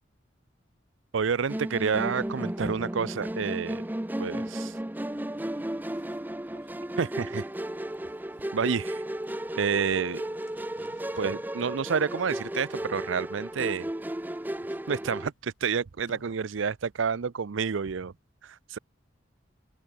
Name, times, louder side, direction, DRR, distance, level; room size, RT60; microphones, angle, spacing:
voice 1, 1.1-3.8 4.2-4.4 7.0-7.5 8.5-9.0 9.6-10.2 11.2-13.9 14.9-18.1 18.4-18.8, right 6 dB, 85° right, 0.6 m, -29 dB
Musical instrument, 1.5-15.3, right 1 dB, 10° right, 0.6 m, -34 dB
sound 1, 2.9-3.1 3.4-16.8, left 2 dB, 75° left, 5.6 m, -66 dB
voice 2, 5.3-5.9 6.4-7.0 10.7-11.1, equal, 55° right, 7.6 m, -64 dB
head